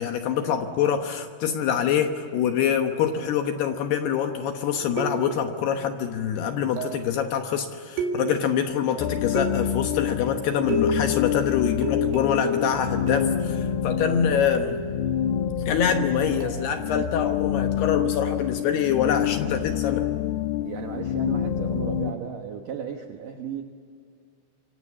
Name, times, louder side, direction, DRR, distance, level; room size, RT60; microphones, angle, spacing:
voice 1, 0.0-14.8 15.7-20.1, left 8 dB, 70° left, 6 dB, 2.7 m, -25 dB
sound 1, 5.0-5.5 6.8-7.1 8.0-8.6 9.4-9.9 10.7-11.2 11.8-13.5 14.6-15.0 16.4-16.6, right 1 dB, 90° right, 4.9 m, -30 dB
sound 2, 9.0-22.1, left 10 dB, 90° left, 2.2 m, -27 dB
sound 3, 12.5-19.3 19.7-19.8, right 5 dB, 55° right, 8.3 m, -45 dB
voice 2, 20.6-23.6, right 8 dB, 75° right, 4 dB, 2.0 m, -35 dB
26.0 x 25.5 x 7.4 m, 2.3 s
omnidirectional pair, 5.7 m